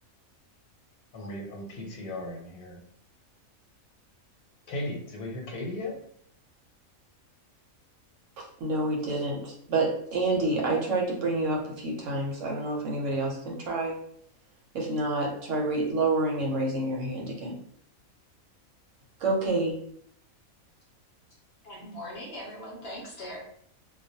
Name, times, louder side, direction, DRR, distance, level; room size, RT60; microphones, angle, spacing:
voice 1, 1.1-2.8 4.7-5.9, left 1 dB, 85° left, 1 dB, 1.2 m, -36 dB
voice 2, 8.4-13.9 14.7-17.6 19.2-19.7, right 2 dB, 65° right, -1 dB, 0.9 m, -28 dB
voice 3, 21.6-23.4, equal, 60° left, -4 dB, 0.7 m, -40 dB
2.3 x 2.2 x 2.6 m, 0.67 s
omnidirectional pair, 1.5 m